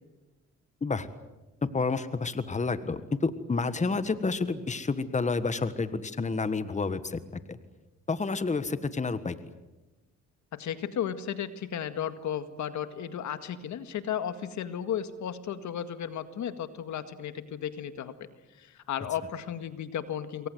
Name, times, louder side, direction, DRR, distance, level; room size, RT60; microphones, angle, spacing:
voice 1, 1.6-7.6 8.1-9.3, left 4 dB, 25° left, 12 dB, 1.5 m, -29 dB
voice 2, 10.5-18.3 18.6-20.5, left 9 dB, 70° left, 10 dB, 1.9 m, -34 dB
27.5 x 23.0 x 7.9 m, 1.1 s
cardioid pair, 90°, 30 cm